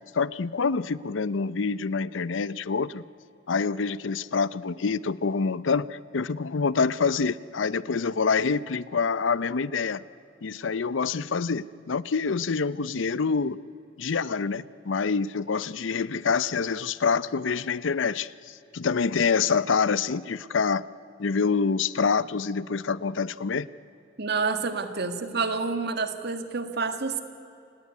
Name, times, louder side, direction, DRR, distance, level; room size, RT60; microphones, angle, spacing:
voice 1, 0.1-3.0 3.5-10.0 10.4-13.6 14.0-20.8 21.2-23.7, left 5 dB, 75° left, 18 dB, 0.6 m, -26 dB
voice 2, 24.2-27.2, right 4 dB, 60° right, 8 dB, 1.7 m, -28 dB
28.0 x 18.0 x 9.6 m, 2.9 s
head